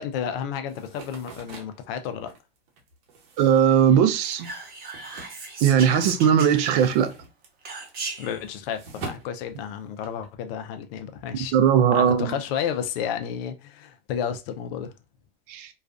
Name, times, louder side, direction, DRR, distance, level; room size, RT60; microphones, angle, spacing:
voice 1, 0.0-2.3 8.2-11.5 11.9-14.9, left 8 dB, 70° left, 0.5 m, -31 dB
sound 1, 0.7-6.1 6.4-10.3, right 3 dB, 75° right, 0.9 m, -44 dB
voice 2, 3.4-4.5 5.6-7.1 11.5-12.3 15.5-15.7, right 8 dB, 60° right, 0.5 m, -19 dB
Whispering, 4.1-7.1 7.6-8.4, right 3 dB, 30° right, 0.8 m, -36 dB
2.3 x 2.3 x 2.3 m
hypercardioid pair, 90°, 30 cm